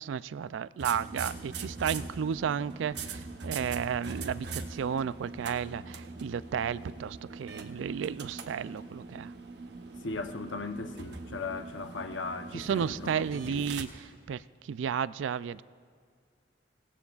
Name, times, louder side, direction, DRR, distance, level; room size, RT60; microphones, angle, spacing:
voice 1, 0.0-9.3 12.5-14.4 14.7-15.6, right 7 dB, 80° right, 17 dB, 0.3 m, -33 dB
sound 1, 0.8-13.8, right 4 dB, 60° right, 0.9 m, -42 dB
voice 2, 10.0-13.7, left 3 dB, 80° left, 8 dB, 0.8 m, -38 dB
25.5 x 17.5 x 2.4 m, 2.1 s
head